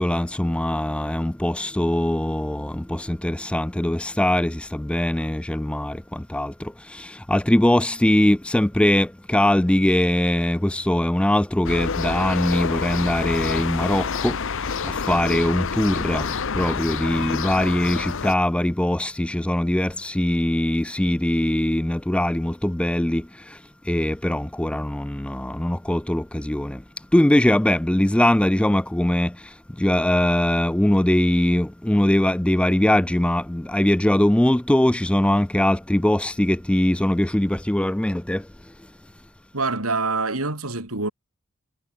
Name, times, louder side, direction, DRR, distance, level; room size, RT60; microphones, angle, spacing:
voice 1, 0.0-23.6 23.8-26.8 27.1-38.5, left 1 dB, 5° left, 0.4 m, -22 dB
sound 1, 11.6-18.3, left 5 dB, 65° left, 0.9 m, -28 dB
voice 2, 39.5-41.1, right 3 dB, 80° right, 5.1 m, -25 dB
head